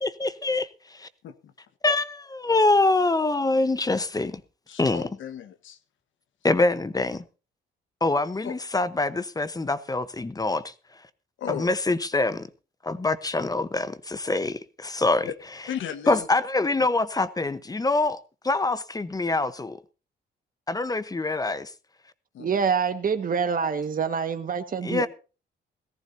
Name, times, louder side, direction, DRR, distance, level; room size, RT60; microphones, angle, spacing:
voice 1, 0.0-1.1 1.8-4.4 4.8-5.1 6.4-7.2 8.0-10.7 11.5-12.5 12.8-15.3 16.1-18.2 18.4-19.8 20.7-21.7 24.8-25.1, left 2 dB, 20° left, 1.0 m, -25 dB
voice 2, 4.7-5.8 8.4-8.5 11.4-11.7 15.2-15.3 15.7-16.3 22.3-22.5, left 9 dB, 75° left, 1.4 m, -34 dB
voice 3, 22.4-25.1, right 6 dB, 45° right, 1.7 m, -26 dB
18.0 x 14.5 x 2.8 m
cardioid pair, 90°, 20 cm